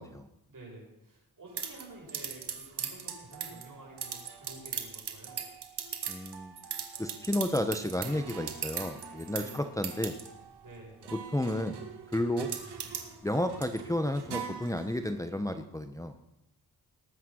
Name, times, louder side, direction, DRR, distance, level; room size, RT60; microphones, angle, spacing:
voice 1, 0.5-5.4 9.3-9.7 10.6-11.0 12.3-12.5, right 2 dB, 55° right, -2 dB, 7.9 m, -50 dB
sound 1, 1.6-15.1, right 7 dB, 85° right, 2.0 m, -40 dB
voice 2, 6.1-6.5 7.0-10.1 11.1-11.8 12.1-12.5 13.2-16.2, left 1 dB, 10° left, 7 dB, 1.0 m, -32 dB
20.0 x 8.9 x 6.4 m, 0.88 s
cardioid pair, 70°, 39 cm